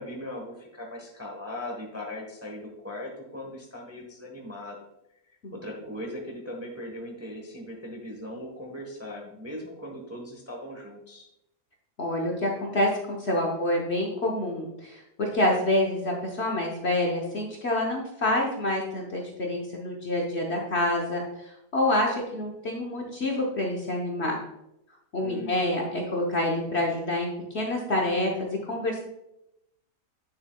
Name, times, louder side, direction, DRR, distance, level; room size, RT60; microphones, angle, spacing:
voice 1, 0.0-4.8 5.3-11.3 25.2-25.6, left 1 dB, 10° right, -1 dB, 0.9 m, -39 dB
voice 2, 12.0-24.3 25.1-27.3 27.5-28.3 28.6-29.0, left 1 dB, 45° left, -1 dB, 1.1 m, -27 dB
9.2 x 6.8 x 2.3 m, 0.86 s
omnidirectional pair, 1.8 m